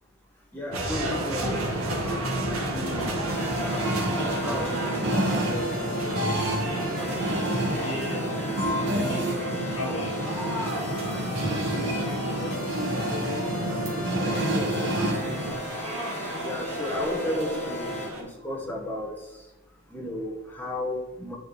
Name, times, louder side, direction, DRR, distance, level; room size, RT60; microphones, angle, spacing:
voice 1, 0.5-1.6 4.2-6.2 11.4-13.6 14.3-14.7 16.4-19.1 19.9-21.4, left 1 dB, 10° left, -2 dB, 1.2 m, -34 dB
sound 1, 0.7-18.2, right 1 dB, 80° right, 1.7 m, -34 dB
sound 2, 1.4-15.5, right 1 dB, 50° right, 1.4 m, -29 dB
voice 2, 2.7-3.3 7.7-10.2 17.0-17.2, left 1 dB, 55° left, -1 dB, 2.0 m, -37 dB
sound 3, 3.3-18.1, left 1 dB, 30° left, 1.2 m, -36 dB
9.4 x 3.9 x 4.1 m, 0.99 s
head